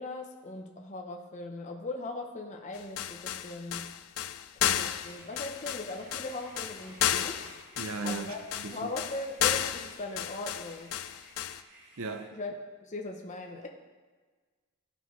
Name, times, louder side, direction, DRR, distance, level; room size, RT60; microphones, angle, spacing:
voice 1, 0.0-3.9 4.5-7.4 8.0-8.4 8.7-10.9 12.3-13.7, left 2 dB, 35° left, 2 dB, 0.7 m, -39 dB
sound 1, 2.7-11.6, left 11 dB, 70° left, 0.4 m, -32 dB
sound 2, 4.9-12.2, right 2 dB, 55° right, 2.8 m, -56 dB
voice 2, 7.8-8.3 8.5-8.9 12.0-12.3, right 4 dB, 70° right, 6 dB, 0.6 m, -36 dB
15.0 x 5.5 x 3.1 m, 1.4 s
head